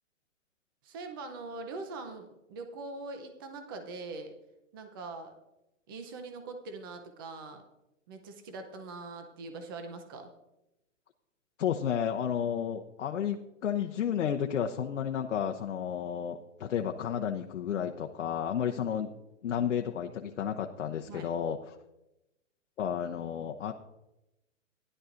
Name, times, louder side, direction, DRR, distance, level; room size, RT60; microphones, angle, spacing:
voice 1, 0.8-4.3 4.7-5.3 5.9-7.6 8.1-10.3 18.7-19.1 21.1-21.3, right 3 dB, 20° right, 6 dB, 0.6 m, -42 dB
voice 2, 11.6-19.1 19.4-21.8 22.8-23.7, left 8 dB, 70° left, 3 dB, 0.9 m, -32 dB
16.5 x 11.0 x 2.5 m, 0.92 s
hypercardioid pair, 165°, 38 cm